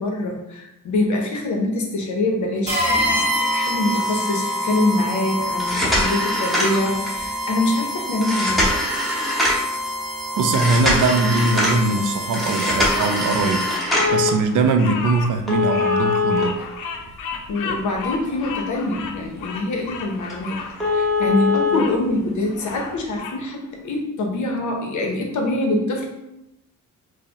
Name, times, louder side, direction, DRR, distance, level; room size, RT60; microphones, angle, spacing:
voice 1, 0.0-8.9 17.5-26.1, left 2 dB, 65° left, 1 dB, 0.9 m, -24 dB
sound 1, 2.7-14.0, equal, 20° right, 1.1 m, -26 dB
sound 2, 5.5-7.2 8.2-9.7 10.5-11.8 12.3-14.3 15.5-17.3 17.8-17.9 18.4-18.5 19.0-19.1 19.4-19.5 19.9-20.0 20.3-20.4 20.8-21.8 22.8-22.9, left 2 dB, ahead, 1.0 m, -22 dB
voice 2, 10.4-13.7 14.1-16.6, right 3 dB, 65° right, 6 dB, 0.5 m, -21 dB
Bird vocalization bird call bird song, 13.0-22.0 22.4-23.4, left 5 dB, 85° left, 0.5 m, -34 dB
4.6 x 2.1 x 2.9 m, 0.88 s
cardioid pair, 120°, 32 cm